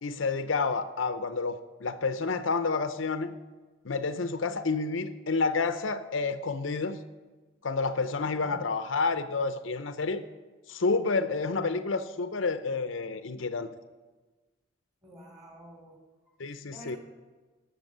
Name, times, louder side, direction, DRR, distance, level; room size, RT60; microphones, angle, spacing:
voice 1, 0.0-3.4 3.8-7.0 7.6-10.2 10.7-13.7 16.4-17.0, left 4 dB, 80° left, 10 dB, 0.7 m, -29 dB
voice 2, 8.2-8.6 10.7-10.8 15.0-16.0 16.5-17.0, equal, 20° right, 0 dB, 3.8 m, -50 dB
18.0 x 7.1 x 6.7 m, 1.3 s
head